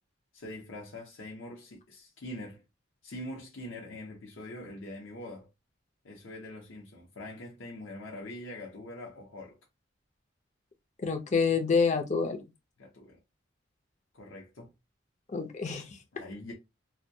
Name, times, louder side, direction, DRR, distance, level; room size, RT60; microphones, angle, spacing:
voice 1, 0.3-2.6 3.0-5.5 6.0-9.6 12.8-13.2 14.1-14.7 16.1-16.5, left 1 dB, 75° left, 0.7 m, -43 dB
voice 2, 11.0-12.4 15.3-16.0, left 5 dB, 35° left, 0.5 m, -27 dB
2.2 x 2.1 x 2.6 m
head